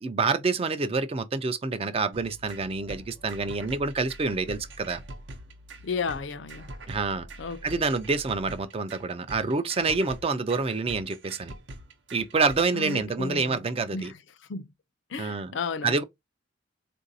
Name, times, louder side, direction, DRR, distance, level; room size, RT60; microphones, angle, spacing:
voice 1, 0.0-5.0 6.9-7.3 7.6-11.5 12.1-14.1 15.2-15.5 15.8-16.0, right 4 dB, 30° right, 0.4 m, -27 dB
sound 1, 2.1-13.1, right 1 dB, 70° right, 0.7 m, -44 dB
voice 2, 5.8-6.7 7.4-7.9 12.7-14.1 14.5-14.7 15.1-16.0, left 5 dB, 70° left, 0.5 m, -34 dB
3.8 x 2.6 x 2.6 m
head